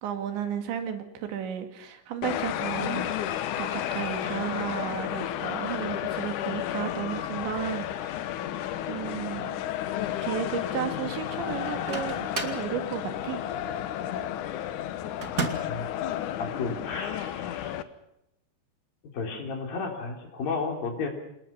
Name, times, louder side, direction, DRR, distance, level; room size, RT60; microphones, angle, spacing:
voice 1, 0.0-3.1 3.6-8.3 8.9-9.6 10.2-12.2 12.4-13.4, right 9 dB, 85° right, 6 dB, 4.5 m, -33 dB
sound 1, 2.2-17.8, left 11 dB, 80° left, 1.7 m, -32 dB
Microwave oven, 11.6-12.7 15.2-15.8, right 4 dB, 30° right, 1.6 m, -32 dB
voice 2, 16.4-17.8 19.1-21.1, left 4 dB, 55° left, 3 dB, 5.0 m, -33 dB
28.0 x 20.5 x 5.8 m, 0.85 s
omnidirectional pair, 5.1 m